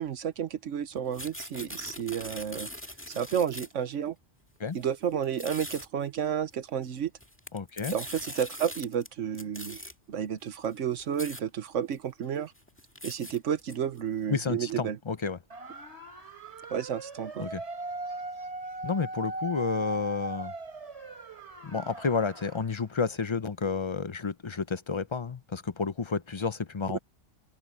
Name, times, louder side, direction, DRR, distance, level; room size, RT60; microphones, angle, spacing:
voice 1, 0.0-2.7 3.1-4.1 4.7-7.1 7.9-12.5 13.0-15.0 16.7-17.5 26.9-27.0, right 8 dB, 85° right, 1.2 m, -31 dB
sound 1, 1.0-3.9 4.7-4.8 5.2-5.9 7.0-9.1 9.3-9.9 10.6-10.7 11.0-11.4 11.9-12.0 12.3-14.0, left 1 dB, 10° left, 1.8 m, -42 dB
voice 2, 7.5-7.9 14.3-15.4 17.4-17.6 18.8-20.5 21.6-27.0, left 5 dB, 30° left, 0.6 m, -31 dB
sound 2, 15.5-22.7, right 2 dB, 65° right, 5.2 m, -39 dB
open air
omnidirectional pair, 1.2 m